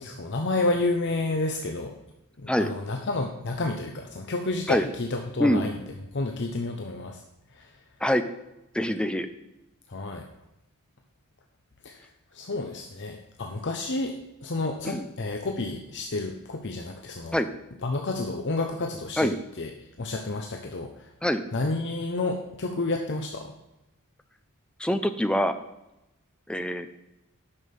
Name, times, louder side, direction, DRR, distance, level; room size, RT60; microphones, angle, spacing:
voice 1, 0.0-2.0 2.4-5.7 6.1-7.2 7.5-7.7 9.9-10.3 11.8-12.1 12.3-17.4 17.8-19.7 20.0-21.1 21.5-23.5, left 2 dB, 55° left, 3 dB, 0.8 m, -30 dB
voice 2, 8.7-9.3 14.8-15.0 17.3-17.5 19.2-19.3 21.2-21.4 24.8-25.5 26.5-26.9, equal, 5° left, 9 dB, 0.6 m, -24 dB
9.8 x 6.4 x 5.3 m, 0.93 s
head